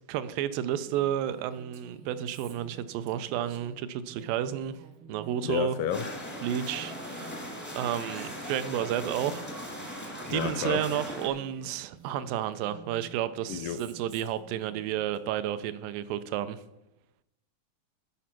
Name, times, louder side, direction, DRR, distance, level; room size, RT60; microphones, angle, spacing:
voice 1, 0.1-4.7 5.1-5.8 6.4-16.6, right 11 dB, 85° right, 2.3 m, -32 dB
Female speech woman speaking, 0.8-10.9 11.3-15.2, right 6 dB, 65° right, 1.3 m, -52 dB
voice 2, 5.4-6.1 10.3-10.8 13.5-13.8, left 9 dB, 80° left, 2.1 m, -30 dB
sound 1, 5.9-11.3, equal, 10° left, 0.5 m, -39 dB
11.0 x 5.1 x 5.9 m
omnidirectional pair, 3.9 m